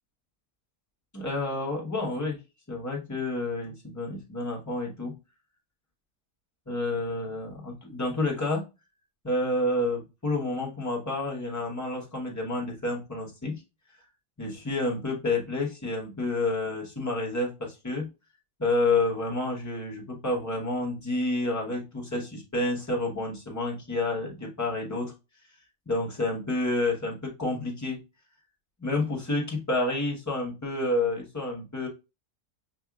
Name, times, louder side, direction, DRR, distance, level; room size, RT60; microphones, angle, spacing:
voice 1, 1.1-2.4 2.7-5.1 6.7-8.6 9.2-13.6 14.4-18.1 18.6-25.1 25.9-28.0 28.8-31.9, left 2 dB, 15° left, -2 dB, 1.1 m, -29 dB
6.1 x 2.6 x 2.3 m, 0.28 s
omnidirectional pair, 1.2 m